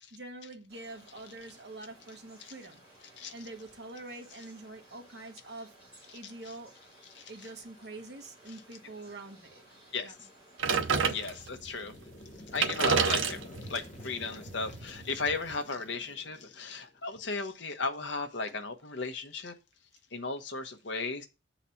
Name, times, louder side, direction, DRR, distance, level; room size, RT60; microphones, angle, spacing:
voice 1, 0.1-2.8 3.3-5.7 6.1-6.7 7.3-10.3 13.3-13.4 13.7-13.9 18.5-18.6, right 2 dB, 60° right, 1.3 m, -46 dB
sound 1, 0.7-11.5, right 1 dB, 10° right, 4.9 m, -58 dB
sound 2, 10.6-11.7 12.2-12.3 12.5-15.6, right 6 dB, 85° right, 0.8 m, -30 dB
voice 2, 11.0-11.9 12.5-13.4 13.7-19.5 20.1-21.3, left 4 dB, 70° left, 1.0 m, -35 dB
sound 3, 11.1-17.0, left 2 dB, 35° left, 1.0 m, -50 dB
7.3 x 4.1 x 5.7 m
head